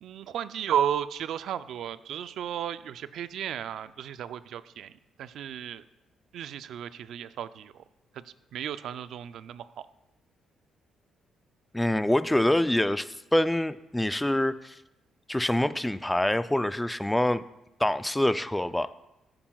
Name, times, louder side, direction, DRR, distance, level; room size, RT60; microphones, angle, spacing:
voice 1, 0.0-5.9 6.3-7.8 8.1-9.9, right 9 dB, 75° right, 14 dB, 0.4 m, -34 dB
voice 2, 11.7-14.7 15.3-17.4 17.8-18.9, left 1 dB, 10° left, 13 dB, 0.4 m, -25 dB
14.5 x 8.7 x 2.3 m, 0.92 s
cardioid pair, 90°, 0 cm